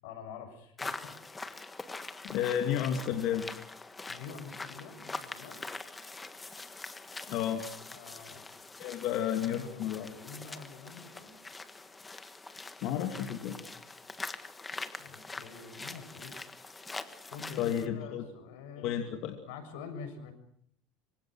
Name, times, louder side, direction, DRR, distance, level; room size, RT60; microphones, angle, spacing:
voice 1, 0.0-1.2 4.1-5.6 7.9-8.4 8.9-9.0 9.5-11.4 15.0-16.3 17.3-19.0 19.4-20.3, left 6 dB, 85° left, 7 dB, 6.8 m, -46 dB
sound 1, 0.8-17.9, left 3 dB, 10° left, 1.6 m, -44 dB
voice 2, 2.2-3.4 7.3-7.6 8.8-10.1 12.8-13.6 17.6-18.2 18.8-19.3, left 10 dB, 55° left, 5 dB, 2.6 m, -31 dB
26.5 x 25.5 x 6.4 m, 0.64 s
cardioid pair, 150°, 0 cm